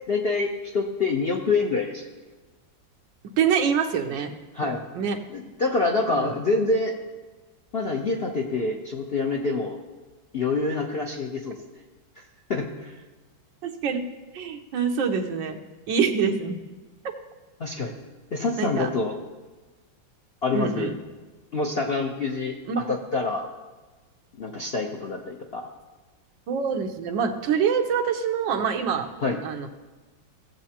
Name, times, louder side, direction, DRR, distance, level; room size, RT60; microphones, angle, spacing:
voice 1, 0.1-2.0 4.5-4.8 5.3-7.0 7.7-9.8 10.3-11.5 12.5-12.9 17.6-17.9 18.3-19.2 20.4-20.9 21.5-22.6 22.9-23.4 24.4-25.7 29.2-29.4, left 3 dB, 65° left, 0 dB, 0.6 m, -26 dB
voice 2, 3.4-4.3 4.6-5.2 6.1-6.3 13.6-14.1 14.3-15.6 15.9-16.6 18.6-18.9 20.5-21.0 22.6-22.8 26.5-29.1 29.4-29.7, right 6 dB, 75° right, 4 dB, 1.6 m, -25 dB
17.0 x 7.3 x 2.9 m, 1.2 s
omnidirectional pair, 2.1 m